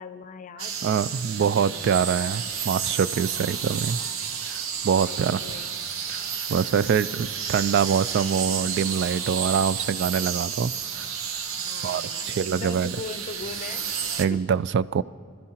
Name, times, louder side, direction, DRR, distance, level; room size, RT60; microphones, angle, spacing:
voice 1, 0.0-0.8 1.0-2.3 5.0-5.9 11.6-13.9 14.3-14.5, left 4 dB, 40° left, 12 dB, 0.5 m, -40 dB
sound 1, 0.6-14.3, right 7 dB, 80° right, 0.8 m, -31 dB
voice 2, 0.8-4.0 4.5-5.4 6.1-6.2 6.5-11.1 11.8-12.9 14.2-15.0, right 7 dB, 55° right, 17 dB, 0.3 m, -24 dB
25.0 x 13.5 x 2.9 m, 2.2 s
head